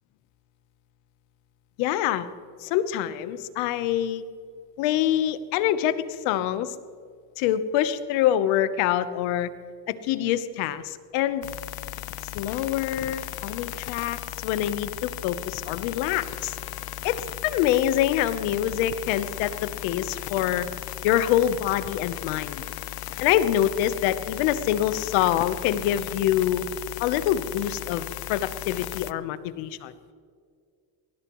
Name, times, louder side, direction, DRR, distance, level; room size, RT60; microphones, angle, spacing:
voice 1, 1.8-2.3 2.6-4.2 4.8-6.7 7.4-9.5 9.9-11.5 12.3-16.6 17.0-20.7 21.0-22.6 23.2-26.6 27.0-29.9, left 11 dB, 85° left, 13 dB, 1.1 m, -25 dB
sound 1, 11.4-29.1, left 14 dB, 55° left, 0.6 m, -36 dB
21.0 x 19.5 x 3.1 m, 2.1 s
cardioid pair, 110°, 45 cm